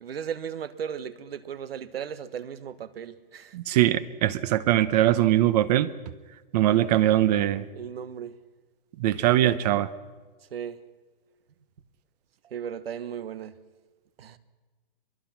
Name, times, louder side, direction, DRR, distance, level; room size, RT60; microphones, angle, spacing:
voice 1, 0.0-3.5 7.7-8.3 10.5-10.8 12.5-13.5 14.2-14.4, right 8 dB, 85° right, 1.5 m, -36 dB
voice 2, 3.5-5.9 6.5-7.6 9.0-9.9, right 13 dB, 45° right, 0.9 m, -22 dB
23.0 x 22.5 x 5.9 m
hypercardioid pair, 150°, 29 cm